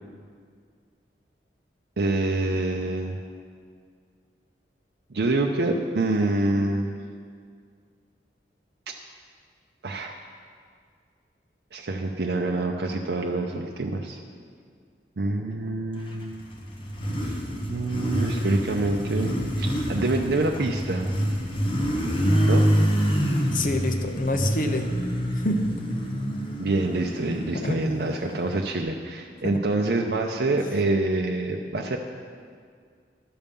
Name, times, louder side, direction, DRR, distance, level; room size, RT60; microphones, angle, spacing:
voice 1, 2.0-3.2 5.1-6.9 8.9-9.0 9.8-10.2 11.7-14.2 15.2-16.3 17.2-17.4 17.7-21.2 22.5-22.6 26.6-32.0, right 2 dB, 70° right, 1 dB, 0.6 m, -26 dB
Motorcycle, 16.1-28.8, equal, 30° left, 1.0 m, -27 dB
voice 2, 22.2-22.9 23.5-24.9 25.3-25.6 25.9-26.0 27.5-27.7 30.4-30.6, left 1 dB, 50° left, 5 dB, 0.7 m, -27 dB
11.5 x 7.0 x 5.3 m, 2.1 s
head